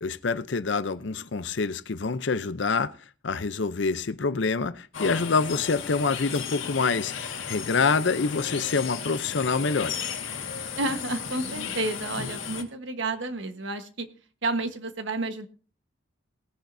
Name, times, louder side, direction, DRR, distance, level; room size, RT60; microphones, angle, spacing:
voice 1, 0.0-2.9 3.2-10.0 12.2-12.3, left 4 dB, 65° left, 0.6 m, -26 dB
sound 1, 4.9-12.6, left 7 dB, 80° left, 1.7 m, -35 dB
voice 2, 10.8-14.1 14.4-15.5, right 2 dB, 70° right, 1.3 m, -30 dB
18.5 x 10.5 x 2.7 m
head